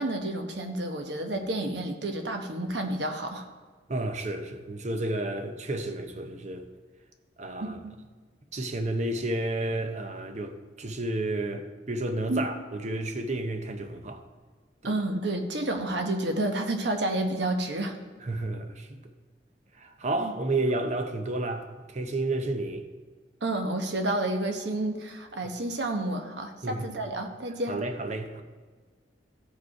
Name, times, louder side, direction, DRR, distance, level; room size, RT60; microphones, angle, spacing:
voice 1, 0.0-3.5 7.6-7.9 12.3-12.5 14.8-18.0 20.2-20.3 23.4-27.8, right 1 dB, 65° right, 1.0 m, -30 dB
voice 2, 3.9-6.7 7.4-7.8 8.5-14.2 14.8-14.9 18.3-19.0 19.8-22.8 26.6-27.0 27.7-28.4, right 2 dB, 40° right, 0.8 m, -31 dB
15.0 x 5.1 x 4.7 m
head